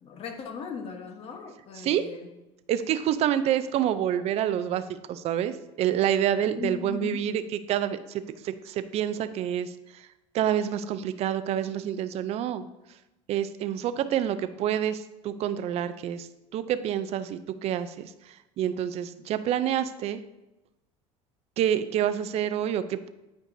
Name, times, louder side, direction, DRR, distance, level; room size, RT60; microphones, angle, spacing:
voice 1, 0.0-2.3 6.5-7.2, left 7 dB, 45° left, 5 dB, 1.0 m, -38 dB
voice 2, 2.7-10.1 10.3-12.7 13.3-20.2 21.6-23.1, right 10 dB, 50° right, 12 dB, 0.4 m, -28 dB
8.9 x 4.6 x 2.6 m, 0.95 s
supercardioid pair, 95°, 14 cm